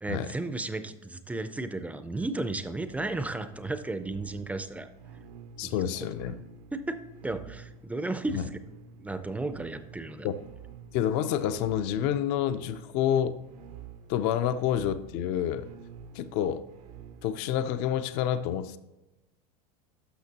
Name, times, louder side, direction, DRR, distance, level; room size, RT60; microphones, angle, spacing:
voice 1, 0.0-4.9 5.6-5.7 6.0-6.1 6.7-8.4 9.0-10.3, right 2 dB, 5° right, 11 dB, 0.4 m, -34 dB
sound 1, 2.8-17.6, right 7 dB, 85° right, 0.7 m, -50 dB
voice 2, 5.6-6.4 8.3-8.4 10.2-10.3 10.9-13.4 14.1-15.7 16.1-16.6 17.2-18.8, left 10 dB, 55° left, 12 dB, 0.5 m, -28 dB
12.5 x 5.9 x 2.8 m, 1.0 s
supercardioid pair, 130°, 20 cm